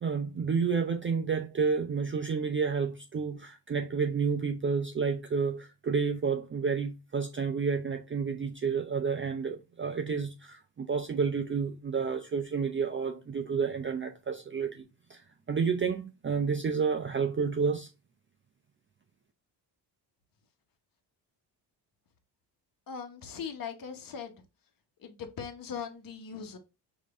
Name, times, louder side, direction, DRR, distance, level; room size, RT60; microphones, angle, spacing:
voice 1, 0.0-14.8 15.1-15.2 15.5-17.9, right 5 dB, 25° right, 0.5 m, -30 dB
voice 2, 22.9-24.3 25.0-26.6, left 7 dB, 45° left, 1.1 m, -40 dB
5.0 x 2.8 x 3.6 m
cardioid pair, 80°, 46 cm